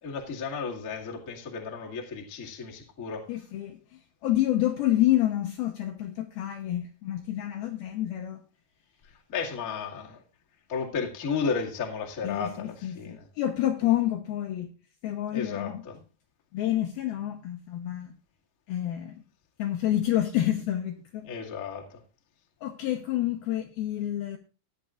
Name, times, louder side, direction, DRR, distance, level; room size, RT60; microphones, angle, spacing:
voice 1, 0.0-3.2 9.3-10.2 10.7-13.3 15.3-15.9 21.3-22.0, left 5 dB, 35° left, 1.3 m, -33 dB
voice 2, 3.3-8.4 12.2-14.7 15.0-15.8 16.5-18.1 18.7-19.2 19.6-21.3 22.6-24.4, left 13 dB, 80° left, 2.3 m, -28 dB
15.5 x 11.0 x 2.5 m
omnidirectional pair, 5.3 m